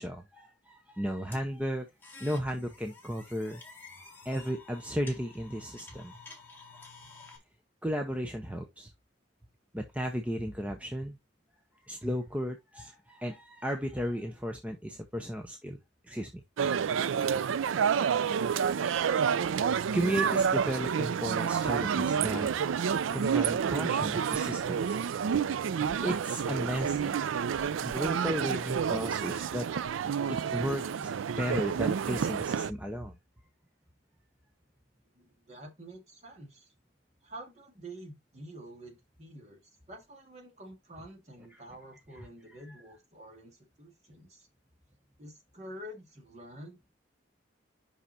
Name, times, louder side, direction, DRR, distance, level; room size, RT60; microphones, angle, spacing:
voice 1, 0.0-1.9 2.2-3.6 4.2-6.1 7.8-8.9 9.7-11.2 11.9-15.8 16.1-16.4 19.2-22.5 23.1-25.0 26.0-27.2 27.8-33.1 41.5-41.6 42.1-42.3, equal, 5° right, 0.7 m, -35 dB
sound 1, 1.3-7.4, left 3 dB, 10° left, 1.7 m, -51 dB
sound 2, 16.6-32.7, right 7 dB, 90° right, 0.4 m, -29 dB
voice 2, 35.2-36.7 37.2-39.6 39.9-44.5 45.2-46.9, right 1 dB, 35° right, 2.1 m, -48 dB
5.7 x 5.5 x 4.1 m
head